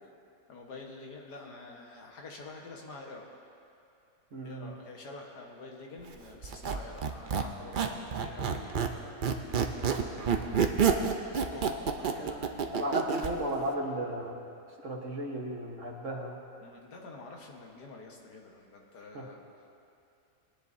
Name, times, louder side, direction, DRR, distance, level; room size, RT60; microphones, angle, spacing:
voice 1, 0.5-3.3 4.4-9.2 9.9-10.7 11.4-13.0 16.6-19.4, left 3 dB, 80° left, 0 dB, 1.9 m, -48 dB
voice 2, 4.3-4.7 12.0-14.4 14.8-16.4 19.1-19.3, right 1 dB, 50° right, 0 dB, 1.5 m, -35 dB
Squeak, 6.4-9.0 9.2-13.3, right 6 dB, 85° right, 0.4 m, -28 dB
21.0 x 10.5 x 2.7 m, 2.5 s
omnidirectional pair, 1.7 m